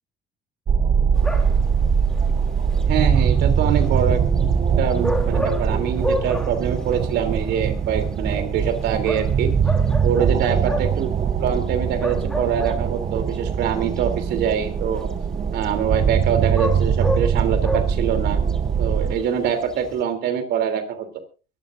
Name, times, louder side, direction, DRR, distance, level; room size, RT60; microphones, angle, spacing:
sound 1, 0.7-19.2, right 7 dB, 40° right, 1.0 m, -22 dB
sound 2, 1.2-20.0, equal, 5° left, 2.8 m, -33 dB
voice 1, 2.8-4.2 4.8-9.5 10.0-11.1 11.4-15.1 15.5-18.4 18.8-21.1, right 8 dB, 75° right, 9 dB, 3.2 m, -24 dB
23.0 x 15.0 x 2.6 m, 0.34 s
cardioid pair, 110°, 17 cm